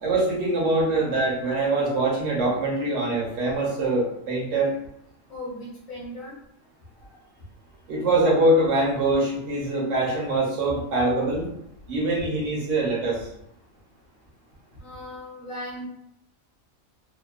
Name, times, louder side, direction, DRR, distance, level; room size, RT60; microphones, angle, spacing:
voice 1, 0.0-4.7 7.9-11.5 11.9-13.3, right 2 dB, 65° right, -3 dB, 1.1 m, -23 dB
voice 2, 5.3-6.3 7.1-7.2 14.8-15.9, left 1 dB, 45° left, -5 dB, 1.0 m, -37 dB
2.8 x 2.1 x 2.3 m, 0.77 s
omnidirectional pair, 1.4 m